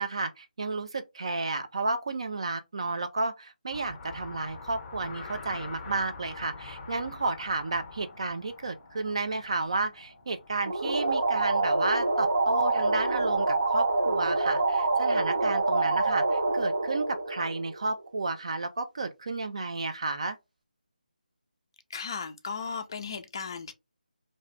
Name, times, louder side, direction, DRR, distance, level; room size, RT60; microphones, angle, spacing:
voice 1, 0.0-20.4, right 3 dB, 40° right, 0.3 m, -32 dB
sound 1, 3.7-11.2, left 4 dB, 15° left, 0.8 m, -45 dB
sound 2, 10.7-18.0, right 2 dB, 55° right, 1.0 m, -26 dB
voice 2, 21.9-23.7, left 5 dB, 30° left, 0.4 m, -36 dB
2.6 x 2.3 x 3.1 m
figure-of-eight pair, 155°, 5 cm